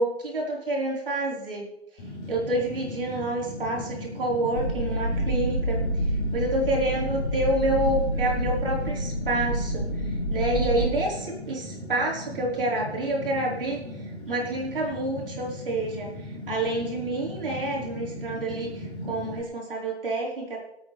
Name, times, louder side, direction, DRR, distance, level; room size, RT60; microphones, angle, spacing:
voice 1, 0.0-1.7 2.3-5.8 6.3-9.9 10.3-13.8 14.3-16.1 16.5-20.6, right 1 dB, 55° right, -3 dB, 4.7 m, -28 dB
Fire, 2.0-19.4, left 1 dB, 25° left, 4.0 m, -38 dB
sound 1, 4.6-10.9, equal, 80° left, 3.1 m, -28 dB
25.0 x 8.8 x 3.4 m, 0.84 s
figure-of-eight pair, 145°, 33 cm